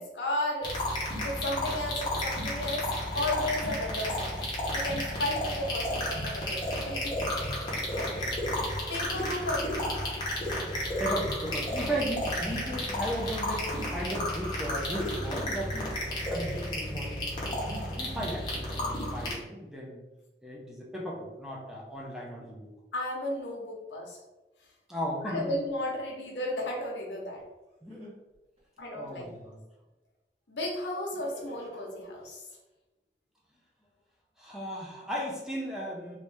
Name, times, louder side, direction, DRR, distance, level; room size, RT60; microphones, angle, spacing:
voice 1, 0.0-2.9 3.1-4.3 4.7-7.2 7.9-8.2 8.9-9.9 22.9-24.2 25.2-27.4 28.8-29.3 30.5-32.4, left 1 dB, 90° left, -1 dB, 0.9 m, -34 dB
sound 1, 0.6-19.3, left 1 dB, 25° left, 0.8 m, -32 dB
voice 2, 8.0-8.6 11.0-16.0 16.3-17.6 18.0-20.0 20.4-22.7 24.9-25.6 27.8-28.1 28.9-29.6 34.4-36.2, equal, 5° right, -3 dB, 0.5 m, -36 dB
Laughter, 27.9-29.4 31.1-32.3, equal, 35° right, 1.4 m, -50 dB
3.1 x 2.7 x 3.3 m, 1.1 s
head